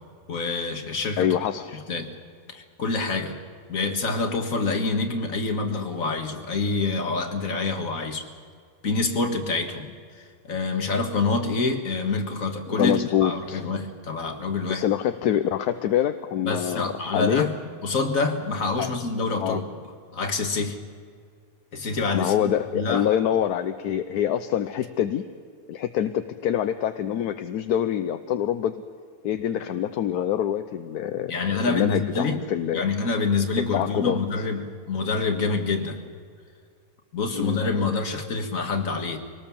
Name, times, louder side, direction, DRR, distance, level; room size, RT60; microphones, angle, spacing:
voice 1, 0.3-1.4 1.9-2.1 2.5-3.4 3.7-8.3 8.8-14.8 16.4-19.6 20.1-20.8 21.7-23.1 31.3-32.4 32.7-36.0 37.1-39.2, left 3 dB, 55° left, 4 dB, 2.2 m, -27 dB
voice 2, 1.2-1.7 12.7-13.7 14.7-17.5 18.8-18.9 19.4-19.6 22.1-25.3 25.7-28.8 29.2-32.8 33.7-34.2 37.3-37.6, left 10 dB, 75° left, 9 dB, 1.2 m, -25 dB
24.0 x 19.0 x 7.2 m, 2.2 s
omnidirectional pair, 1.7 m